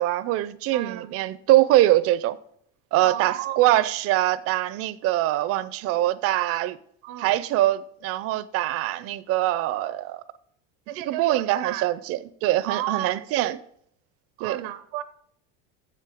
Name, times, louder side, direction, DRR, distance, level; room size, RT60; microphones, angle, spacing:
voice 1, 0.0-2.4 2.9-6.8 7.2-10.2 11.1-13.6 14.4-14.6, right 15 dB, 40° right, 0.4 m, -23 dB
voice 2, 0.7-1.1 3.0-3.8 7.0-7.4 10.9-11.9 12.6-13.6 14.4-15.0, right 13 dB, 90° right, 0.6 m, -33 dB
7.6 x 7.5 x 4.9 m
cardioid pair, 150°, 37 cm